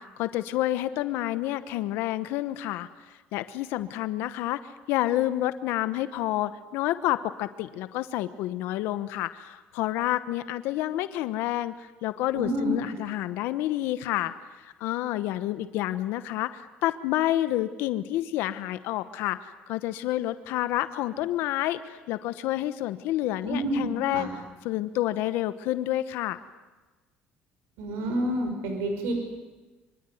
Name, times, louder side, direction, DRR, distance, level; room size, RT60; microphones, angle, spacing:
voice 1, 0.0-14.3 14.6-24.3 24.6-26.4, left 14 dB, 75° left, 12 dB, 1.1 m, -29 dB
voice 2, 12.3-12.8 23.4-23.8 24.1-24.3 27.8-29.2, right 1 dB, 80° right, 4 dB, 5.9 m, -28 dB
25.5 x 25.0 x 9.4 m, 1.2 s
cardioid pair, 160°, 4 cm